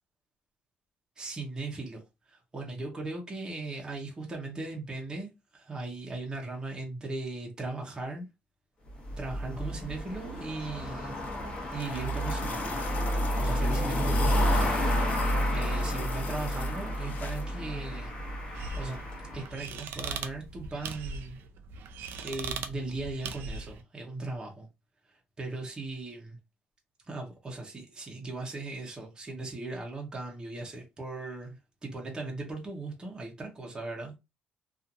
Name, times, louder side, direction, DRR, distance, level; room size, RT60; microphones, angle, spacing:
voice 1, 1.2-2.0 2.3-8.3 9.2-11.1 11.7-12.8 13.4-14.7 15.5-18.1 18.7-19.0 19.3-21.4 22.2-24.7 25.1-26.4 27.1-34.1, right 3 dB, 20° right, 0.8 m, -38 dB
sound 1, 8.9-19.5, equal, 30° left, 1.0 m, -30 dB
sound 2, 10.8-17.5 18.8-18.9, left 7 dB, 55° left, 0.4 m, -45 dB
sound 3, 18.5-23.8, right 5 dB, 90° right, 0.4 m, -40 dB
2.7 x 2.4 x 2.5 m
cardioid pair, 135°, 3 cm